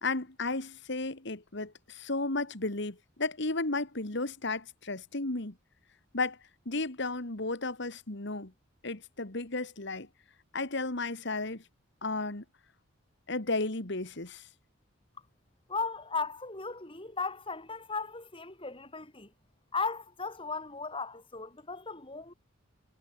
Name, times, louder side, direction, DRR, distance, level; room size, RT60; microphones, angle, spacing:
voice 1, 0.0-5.5 6.1-6.4 6.7-8.5 8.8-10.1 10.5-11.6 12.0-12.4 13.3-14.4, left 3 dB, 55° left, 2.2 m, -33 dB
voice 2, 15.7-19.3 19.7-22.3, left 4 dB, 25° left, 4.0 m, -36 dB
head